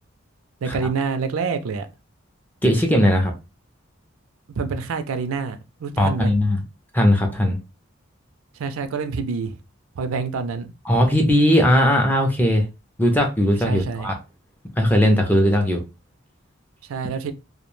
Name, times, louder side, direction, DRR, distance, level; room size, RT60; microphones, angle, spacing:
voice 1, 0.6-1.9 4.6-5.6 5.8-6.3 8.6-9.5 10.0-10.7 13.6-14.1 16.9-17.3, right 5 dB, 90° right, 0.4 m, -26 dB
voice 2, 2.6-3.3 6.0-6.6 6.9-7.6 10.9-12.6 13.0-14.2 14.8-15.8, equal, 10° left, 0.3 m, -18 dB
2.2 x 2.1 x 3.0 m
head